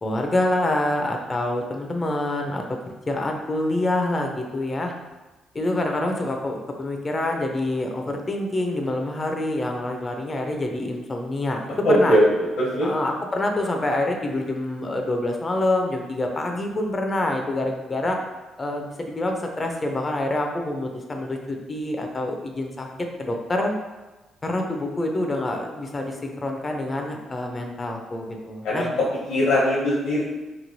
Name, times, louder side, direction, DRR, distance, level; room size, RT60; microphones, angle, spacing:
voice 1, 0.0-2.6 3.1-4.9 5.5-12.2 12.8-18.2 18.6-22.9 23.2-23.7 24.4-28.9, left 1 dB, 30° left, 2 dB, 0.4 m, -26 dB
voice 2, 11.8-12.9 28.6-28.8 29.3-30.2, equal, 85° left, -8 dB, 1.0 m, -20 dB
3.0 x 2.7 x 2.6 m, 1.1 s
cardioid pair, 90°, 0 cm